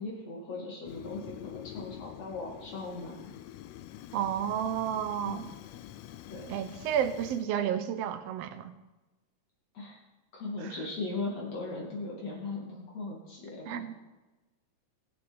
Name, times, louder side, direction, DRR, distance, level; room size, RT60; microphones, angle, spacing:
voice 1, 0.0-3.2 5.2-5.5 6.3-6.4 9.7-10.0 10.3-13.8, left 3 dB, 55° left, -3 dB, 3.5 m, -38 dB
Fire, 0.8-7.5, left 12 dB, 85° left, 1.5 m, -46 dB
voice 2, 4.1-5.4 6.5-8.7 10.6-10.7 13.7-13.9, right 9 dB, 80° right, 11 dB, 1.4 m, -31 dB
21.5 x 7.6 x 4.2 m, 1.1 s
omnidirectional pair, 3.6 m